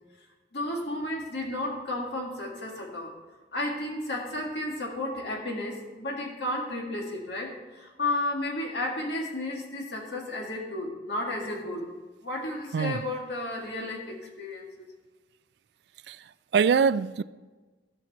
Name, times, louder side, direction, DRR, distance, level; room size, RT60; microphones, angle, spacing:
voice 1, 0.5-3.1 3.5-11.9 12.2-14.9, left 1 dB, 70° left, 2.0 m, -33 dB
voice 2, 16.5-17.2, right 6 dB, 65° right, 0.3 m, -23 dB
14.0 x 5.9 x 4.1 m
head